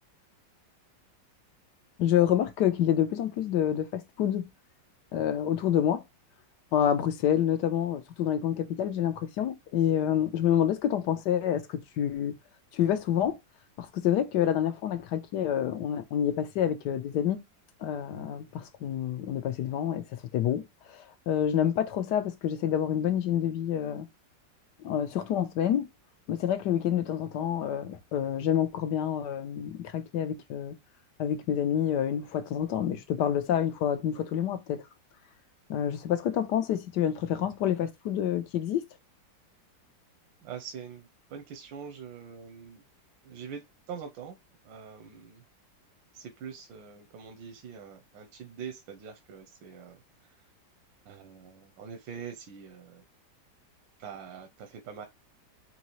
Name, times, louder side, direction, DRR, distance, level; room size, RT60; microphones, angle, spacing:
voice 1, 2.0-4.5 5.1-6.0 6.7-12.3 12.7-13.4 13.8-17.4 17.8-20.1 20.3-24.1 24.8-25.9 26.3-30.7 31.2-34.8 35.7-38.8, left 10 dB, 70° left, 1.3 m, -28 dB
voice 2, 40.4-42.8 43.2-44.4 44.6-45.4 46.1-50.4 51.0-53.0 54.0-55.1, right 7 dB, 90° right, 1.5 m, -44 dB
4.6 x 2.9 x 3.0 m
omnidirectional pair, 2.0 m